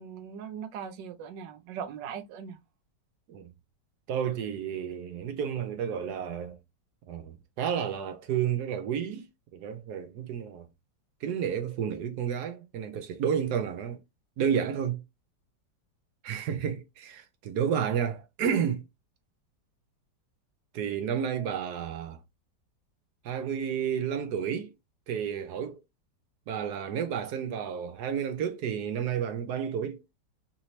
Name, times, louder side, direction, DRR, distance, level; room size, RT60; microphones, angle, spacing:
voice 1, 0.0-2.6, right 7 dB, 90° right, 1.4 m, -40 dB
voice 2, 4.1-6.6 7.1-9.3 9.5-10.7 11.2-14.0 14.4-15.0 16.2-18.8 20.7-22.2 23.2-24.7 25.1-25.8 26.5-30.0, right 8 dB, 70° right, 1.2 m, -31 dB
4.1 x 3.0 x 2.7 m
omnidirectional pair, 1.9 m